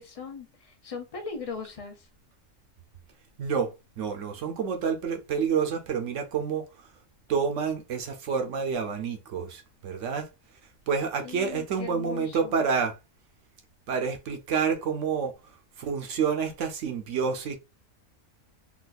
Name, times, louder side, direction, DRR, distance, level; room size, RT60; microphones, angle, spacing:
voice 1, 0.0-2.1 11.2-12.7, left 5 dB, 35° left, 0.6 m, -39 dB
voice 2, 3.4-6.7 7.3-10.3 10.9-13.0 13.9-15.3 15.8-17.6, right 6 dB, 70° right, 0.9 m, -28 dB
4.0 x 2.3 x 2.4 m
omnidirectional pair, 1.4 m